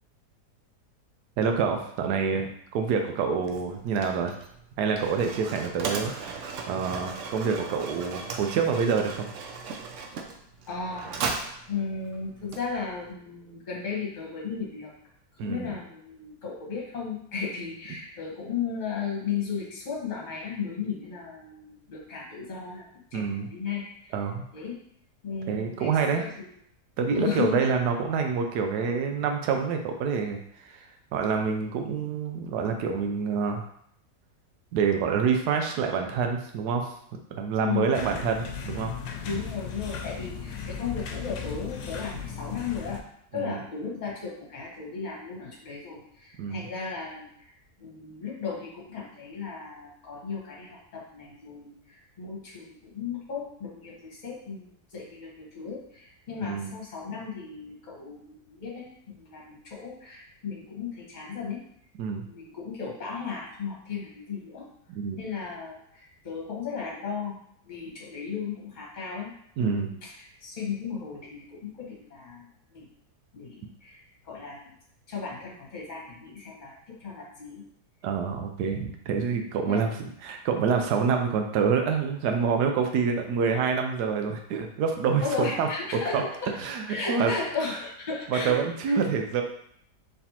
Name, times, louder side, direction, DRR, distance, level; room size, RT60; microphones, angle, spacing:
voice 1, 1.4-4.3 4.8-9.3 15.4-15.7 23.1-23.5 24.1-24.4 25.5-26.3 27.0-33.7 34.7-36.9 37.3-38.9 39.3-39.4 43.3-43.6 46.4-46.6 56.4-56.7 62.0-62.3 64.9-65.2 69.6-69.9 78.0-85.7 86.1-86.2 86.6-87.3 88.3-89.4, right 6 dB, 85° right, 4 dB, 1.2 m, -27 dB
Mechanisms, 3.4-13.1, right 5 dB, 65° right, 0.7 m, -37 dB
voice 2, 10.7-11.1 11.7-14.9 15.4-22.8 23.1-24.1 24.5-24.8 25.2-26.5 27.1-27.6 37.5-37.8 39.2-43.0 43.3-47.5 47.8-61.6 62.2-64.7 65.2-67.4 67.6-69.3 69.6-72.4 72.7-72.8 73.3-74.7 75.1-77.6 79.6-79.8 85.2-86.5 86.9-88.5, left 5 dB, 30° left, -3 dB, 1.1 m, -35 dB
sound 1, 37.9-43.0, left 6 dB, 85° left, 1.2 m, -36 dB
4.3 x 3.3 x 2.8 m, 0.68 s
omnidirectional pair, 1.7 m